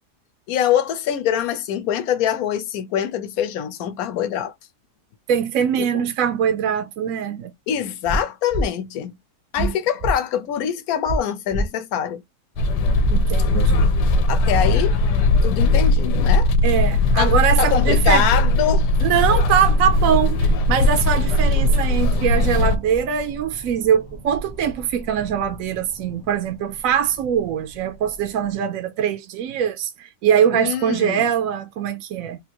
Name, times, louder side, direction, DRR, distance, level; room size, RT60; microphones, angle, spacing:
voice 1, 0.5-4.5 5.8-6.0 7.7-9.1 9.5-12.2 14.3-15.0 15.4-16.5 17.2-18.9 30.5-31.2, left 9 dB, 65° left, 1.1 m, -24 dB
voice 2, 5.3-7.5 9.6-9.7 13.1-14.0 16.6-18.3 19.0-32.4, right 8 dB, 65° right, 0.9 m, -22 dB
sound 1, 8.1-8.2 8.5-8.6 9.6-9.7 10.0-10.1 11.1-11.2 11.5-11.6 12.6-12.7 13.0-13.1 14.1-14.2 14.5-14.6, right 1 dB, 40° right, 0.6 m, -23 dB
sound 2, 12.6-22.8, left 2 dB, 85° left, 1.2 m, -18 dB
sound 3, 17.1-28.5, right 1 dB, 30° left, 0.4 m, -38 dB
3.5 x 2.6 x 2.9 m
omnidirectional pair, 1.8 m